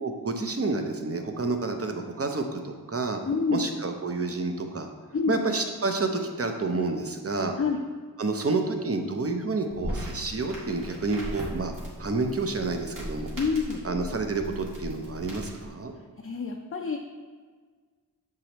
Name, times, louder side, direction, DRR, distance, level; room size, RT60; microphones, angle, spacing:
voice 1, 0.0-3.2 3.5-4.9 5.3-7.5 8.2-11.7 12.0-13.3 13.8-15.9, right 3 dB, 40° right, 5 dB, 0.6 m, -29 dB
voice 2, 3.2-3.6 5.1-5.4 7.6-7.8 13.3-13.8 16.2-17.0, left 5 dB, 35° left, 2 dB, 0.5 m, -27 dB
sound 1, 9.7-15.7, equal, 60° right, 1.8 m, -38 dB
7.0 x 4.8 x 3.0 m, 1.5 s
wide cardioid pair, 50°, 37 cm